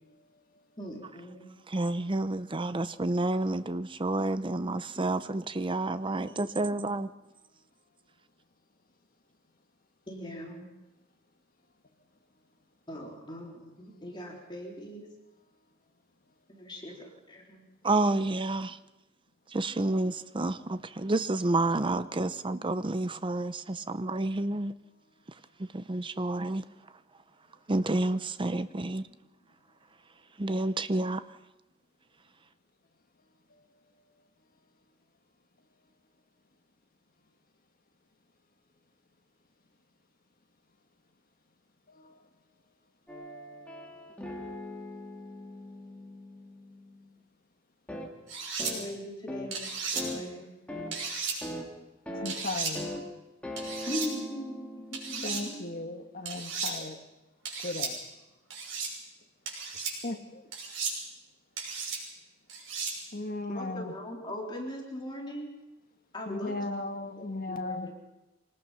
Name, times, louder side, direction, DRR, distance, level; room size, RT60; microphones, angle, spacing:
voice 1, 0.8-1.5 5.0-5.1 6.2-6.3 10.1-10.7 12.9-15.1 16.5-17.6 48.7-50.6 53.9-55.7 63.5-65.5 66.1-66.5 67.2-67.9, equal, 25° left, 3.7 m, -40 dB
voice 2, 1.7-7.1 17.8-18.8 19.5-24.7 25.7-26.6 27.7-29.1 30.4-31.2, right 2 dB, 25° right, 0.7 m, -29 dB
voice 3, 41.9-42.3 52.1-52.9 55.2-57.0 57.6-58.0 59.7-60.5 63.1-63.9 66.3-67.9, left 2 dB, 45° left, 1.8 m, -36 dB
sound 1, 43.1-47.1 47.9-48.1 48.6-48.9 49.3-49.6 50.0-50.2 50.7-50.9 51.4-51.7 52.1-52.4 52.8-53.0 53.4-55.9, left 1 dB, 5° left, 2.6 m, -41 dB
sound 2, 48.3-48.7 49.5-50.0 50.9-51.4 52.3-52.7 53.6-54.1 54.9-55.4 56.3-56.7 57.5-57.9 58.5-58.9 59.5-59.9 60.5-61.0 61.6-62.0 62.5-62.9, right 5 dB, 75° right, 6.3 m, -34 dB
25.0 x 19.5 x 5.7 m
head